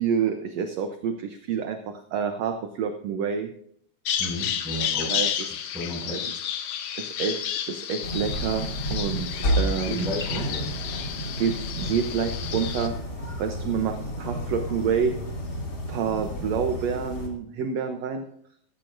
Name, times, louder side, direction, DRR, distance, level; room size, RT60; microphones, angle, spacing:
voice 1, 0.0-3.5 5.1-5.5 6.1-6.3 7.0-10.1 11.4-12.9 13.4-15.1 15.9-18.2, right 7 dB, 70° right, 6 dB, 1.7 m, -28 dB
Bird vocalization bird call bird song, 4.1-12.9, left 9 dB, 70° left, 2.2 m, -31 dB
voice 2, 4.2-5.1 5.7-6.2 9.8-10.7, left 1 dB, ahead, -2 dB, 5.6 m, -32 dB
sound 1, 8.0-17.3, equal, 35° left, 2.4 m, -31 dB
sound 2, 12.1-17.3, left 1 dB, 50° left, 5.6 m, -38 dB
15.0 x 15.0 x 2.6 m, 0.68 s
omnidirectional pair, 3.9 m